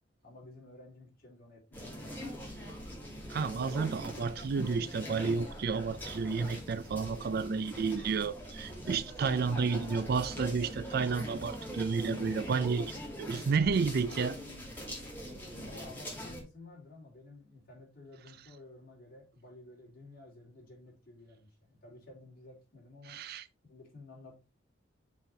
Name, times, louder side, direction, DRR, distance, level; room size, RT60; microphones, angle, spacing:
voice 1, 0.2-2.2 15.5-23.2 23.6-24.4, left 2 dB, 50° left, 3.0 m, -53 dB
sound 1, 1.7-16.4, equal, 10° left, 2.4 m, -42 dB
voice 2, 3.3-12.9 13.2-14.4 23.1-23.4, right 5 dB, 50° right, 0.4 m, -31 dB
7.1 x 4.4 x 3.3 m
head